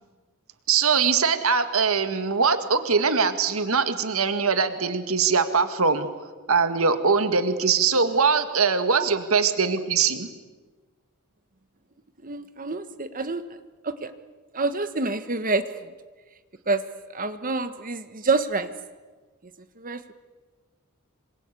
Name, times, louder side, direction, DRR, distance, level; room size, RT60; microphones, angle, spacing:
voice 1, 0.7-6.1 6.5-10.3, right 5 dB, 75° right, 9 dB, 2.0 m, -22 dB
voice 2, 12.2-13.4 13.8-14.1 14.5-15.6 16.7-16.8 17.1-18.7 19.8-20.1, right 3 dB, 40° right, 10 dB, 1.3 m, -27 dB
27.0 x 25.5 x 8.5 m, 1.3 s
head